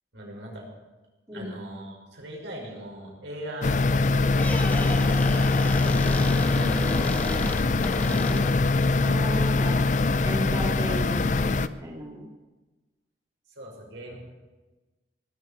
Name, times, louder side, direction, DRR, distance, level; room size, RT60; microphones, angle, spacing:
voice 1, 0.1-0.7 1.3-4.4 4.9-7.7 13.5-14.2, right 1 dB, 85° right, -1 dB, 5.8 m, -41 dB
sound 1, 3.6-11.7, left 3 dB, 40° left, 0.5 m, -23 dB
Squeak, 4.2-8.8, left 1 dB, 10° left, 0.8 m, -34 dB
voice 2, 8.1-8.5 9.0-9.8 10.2-12.3, equal, 20° right, -3 dB, 2.6 m, -34 dB
19.0 x 8.1 x 8.5 m, 1.2 s
head